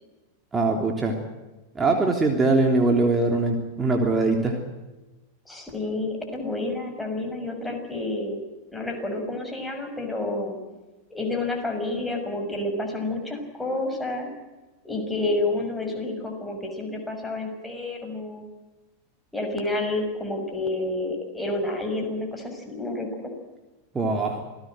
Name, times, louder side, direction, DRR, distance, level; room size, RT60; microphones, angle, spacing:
voice 1, 0.5-1.1 1.7-4.6 23.9-24.4, right 3 dB, 15° right, 2 dB, 3.3 m, -22 dB
voice 2, 5.5-8.4 8.7-10.6 11.1-14.3 14.8-18.4 19.3-23.3, left 2 dB, 5° left, 2 dB, 6.3 m, -29 dB
27.5 x 18.0 x 7.8 m, 1.1 s
figure-of-eight pair, 90°, 0 cm